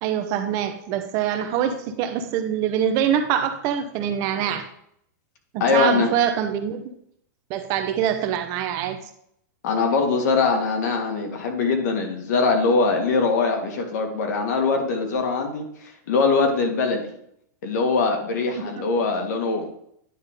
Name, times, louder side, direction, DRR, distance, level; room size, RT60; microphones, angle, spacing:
voice 1, 0.0-4.7 5.5-6.8 7.5-9.0 18.6-18.9, right 9 dB, 35° right, 8 dB, 0.7 m, -24 dB
voice 2, 5.6-6.1 9.6-17.1 17.6-19.6, left 4 dB, 65° left, 3 dB, 1.8 m, -22 dB
9.9 x 3.5 x 5.2 m, 0.70 s
supercardioid pair, 160°, 10 cm